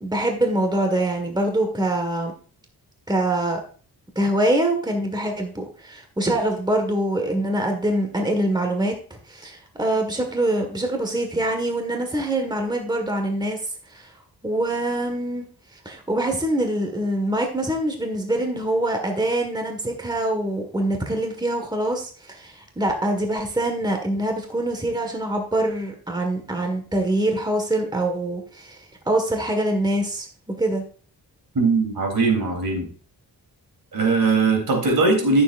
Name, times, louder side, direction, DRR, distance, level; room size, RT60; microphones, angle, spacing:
voice 1, 0.0-2.3 3.1-3.6 4.1-14.1 14.4-15.4 15.7-30.3 30.6-30.8, right 1 dB, 10° right, 3 dB, 1.7 m, -24 dB
voice 2, 31.5-32.9 33.9-35.4, right 3 dB, 65° right, 1 dB, 3.4 m, -20 dB
13.5 x 7.1 x 2.6 m, 0.42 s
cardioid pair, 85°, 39 cm